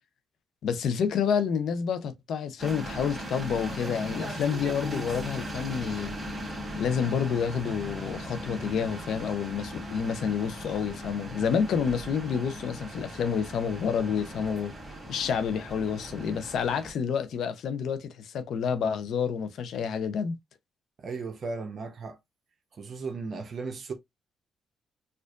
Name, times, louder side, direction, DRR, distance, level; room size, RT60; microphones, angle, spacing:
voice 1, 0.6-6.1 6.8-14.7 15.1-20.3, left 7 dB, 70° left, 0.6 m, -29 dB
sound 1, 2.6-16.9, equal, 20° right, 1.4 m, -38 dB
voice 2, 21.0-22.2 22.8-23.9, right 4 dB, 50° right, 0.8 m, -36 dB
4.4 x 2.5 x 2.4 m
cardioid pair, 90°, 0 cm